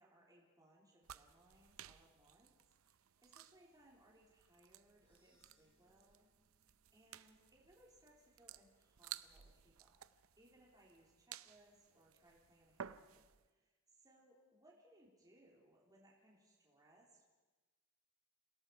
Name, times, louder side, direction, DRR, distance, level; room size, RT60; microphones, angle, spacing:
voice 1, 0.0-2.5 2.8-6.3 6.6-10.0 10.4-17.2, right 1 dB, 20° right, -4 dB, 3.6 m, -68 dB
sound 1, 1.0-13.5, right 10 dB, 70° right, 0.6 m, -57 dB
sound 2, 4.9-9.2, equal, 10° left, 4.5 m, -83 dB
27.5 x 17.5 x 5.9 m, 1.2 s
head